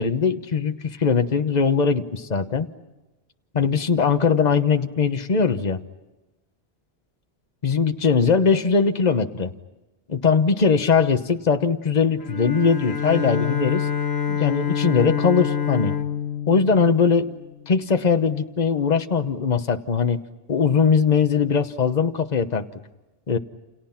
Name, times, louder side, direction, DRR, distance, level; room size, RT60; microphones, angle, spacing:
voice 1, 0.0-2.7 3.5-5.8 7.6-9.5 10.1-13.9 14.3-15.9 16.5-17.3 17.7-20.2 20.5-22.7 23.3-23.4, left 5 dB, 45° left, 7 dB, 1.2 m, -20 dB
Bowed string instrument, 12.2-17.7, left 8 dB, 80° left, 1.4 m, -27 dB
29.0 x 28.5 x 5.8 m, 1.1 s
omnidirectional pair, 1.1 m